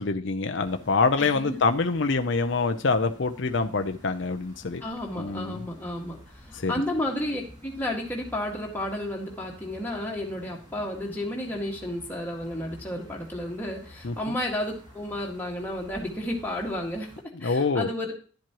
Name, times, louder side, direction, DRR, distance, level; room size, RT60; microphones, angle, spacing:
voice 1, 0.0-4.8 5.2-5.6 6.5-6.7 14.0-14.4 17.4-17.9, left 4 dB, 55° left, 7 dB, 0.6 m, -25 dB
sound 1, 0.6-17.2, left 1 dB, 20° right, 2.2 m, -50 dB
voice 2, 1.2-1.6 4.8-6.2 6.5-17.1 17.4-18.1, left 1 dB, 10° left, -2 dB, 1.8 m, -32 dB
11.5 x 7.6 x 3.0 m, 0.40 s
head